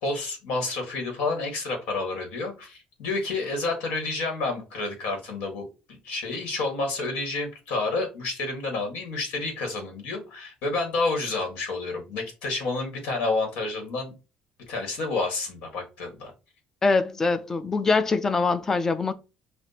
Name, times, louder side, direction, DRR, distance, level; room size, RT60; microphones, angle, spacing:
voice 1, 0.0-14.1 14.7-16.3, left 3 dB, 85° left, 1.7 m, -29 dB
voice 2, 16.8-19.1, left 4 dB, 15° left, 0.4 m, -23 dB
6.0 x 2.4 x 2.8 m
cardioid pair, 170°, 3 cm